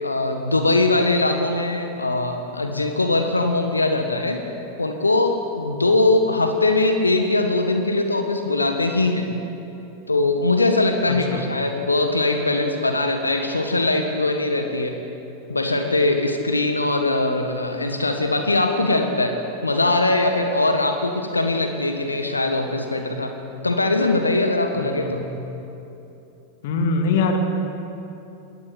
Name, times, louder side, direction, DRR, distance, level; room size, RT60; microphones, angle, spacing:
voice 1, 0.0-4.4 4.8-9.3 10.1-15.0 15.5-19.4 19.6-23.3 23.6-25.2, left 2 dB, 80° left, 6 dB, 1.5 m, -21 dB
voice 2, 11.1-11.5 24.7-25.4 26.6-27.4, left 3 dB, 55° left, 4 dB, 2.7 m, -24 dB
22.0 x 18.0 x 8.3 m, 2.9 s
figure-of-eight pair, 90°, 0 cm